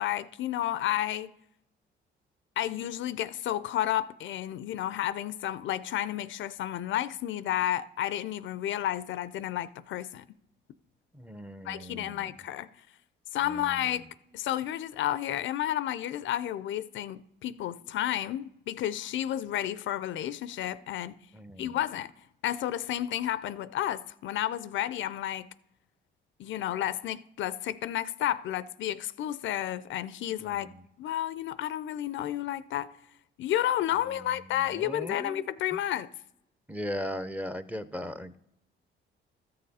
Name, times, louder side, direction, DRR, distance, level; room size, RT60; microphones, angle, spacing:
voice 1, 0.0-1.3 2.6-10.2 11.6-12.7 13.3-14.1 14.3-21.2 21.6-22.1 22.4-25.5 26.4-30.7 31.0-32.9 33.4-36.1, left 12 dB, 70° left, 0.5 m, -31 dB
voice 2, 11.1-12.3 13.4-13.9 21.3-21.8 30.4-30.8 34.5-35.5 35.7-35.8 36.7-38.4, equal, 5° right, 0.6 m, -38 dB
13.5 x 6.6 x 4.1 m
cardioid pair, 90°, 20 cm